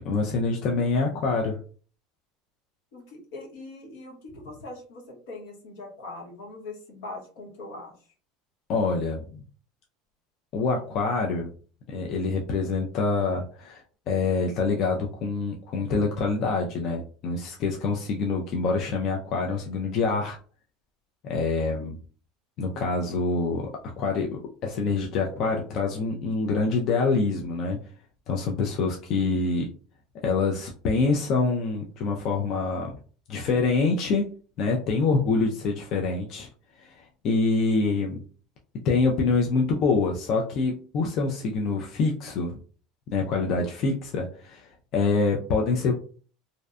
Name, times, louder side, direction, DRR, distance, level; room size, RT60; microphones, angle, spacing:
voice 1, 0.0-1.6 8.7-9.4 10.5-11.5 11.9-20.4 21.2-22.0 22.6-27.8 28.3-29.7 30.2-33.0 33.3-34.3 34.6-36.5 36.8-38.2 38.8-42.6 43.1-45.9, left 4 dB, 40° left, 0 dB, 0.3 m, -26 dB
voice 2, 2.9-8.0, left 2 dB, 70° left, 0 dB, 1.0 m, -41 dB
2.5 x 2.1 x 2.4 m, 0.41 s
cardioid pair, 175°, 0 cm